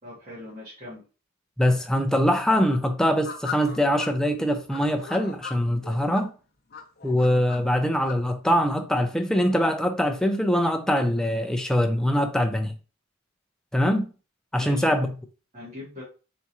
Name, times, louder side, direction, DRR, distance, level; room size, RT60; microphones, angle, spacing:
voice 1, 0.0-1.0 14.6-15.1 15.5-16.0, left 2 dB, 35° right, 1.7 m, -41 dB
voice 2, 1.6-6.3 7.0-12.7 13.7-14.1 14.5-15.1, equal, 5° left, 0.4 m, -23 dB
sound 1, 3.0-4.1 4.7-6.3 6.7-8.1, left 7 dB, 45° left, 0.7 m, -38 dB
4.1 x 3.5 x 3.0 m
head